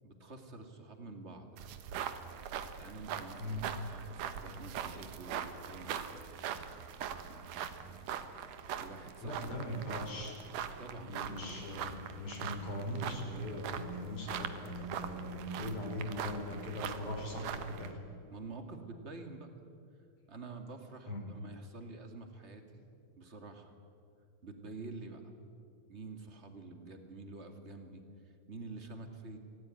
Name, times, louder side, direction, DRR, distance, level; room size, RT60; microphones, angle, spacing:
voice 1, 0.0-1.7 2.8-6.7 7.3-8.1 8.7-9.4 10.8-11.6 18.3-19.5 20.3-22.8 23.2-23.8 24.4-25.2 25.9-29.4, right 3 dB, 25° right, 5 dB, 2.0 m, -48 dB
sound 1, 1.6-17.9, right 8 dB, 85° right, 2.7 m, -42 dB
voice 2, 9.2-10.3 11.0-18.0 21.1-21.2, left 1 dB, 45° left, 1 dB, 5.5 m, -40 dB
25.5 x 17.5 x 9.8 m, 2.4 s
omnidirectional pair, 3.6 m